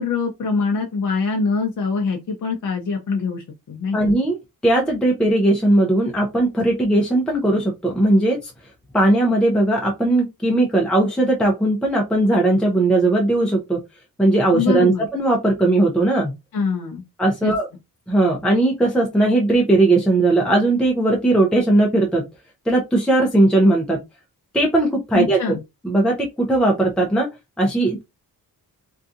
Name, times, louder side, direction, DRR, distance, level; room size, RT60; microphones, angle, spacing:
voice 1, 0.0-4.1 14.5-15.0 16.5-17.0 17.4-17.5 25.1-25.6, left 4 dB, 55° left, 0.6 m, -24 dB
voice 2, 3.9-4.4 4.6-8.5 8.9-13.8 14.2-16.3 17.2-17.7 18.1-22.3 22.7-24.0 24.5-25.4 25.8-27.3 27.6-28.0, right 2 dB, ahead, 0.5 m, -18 dB
2.7 x 2.3 x 2.4 m
wide cardioid pair, 160°, 37 cm